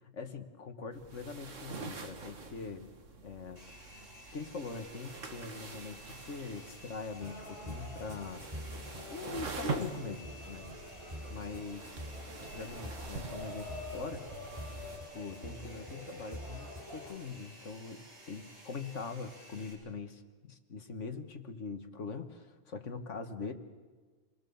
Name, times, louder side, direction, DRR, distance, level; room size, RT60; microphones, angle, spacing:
voice 1, 0.0-2.9 3.2-3.6 4.3-8.5 9.1-10.7 11.3-11.8 12.5-14.3 15.1-23.5, left 4 dB, 75° left, 8 dB, 1.9 m, -42 dB
sound 1, 0.9-15.0, right 4 dB, 85° right, 2.0 m, -45 dB
Domestic sounds home sounds, 3.6-19.7, equal, 65° right, 7.1 m, -55 dB
sound 2, 7.2-17.1, left 1 dB, 25° right, 7.1 m, -45 dB
28.5 x 21.0 x 7.1 m, 1.4 s
omnidirectional pair, 1.3 m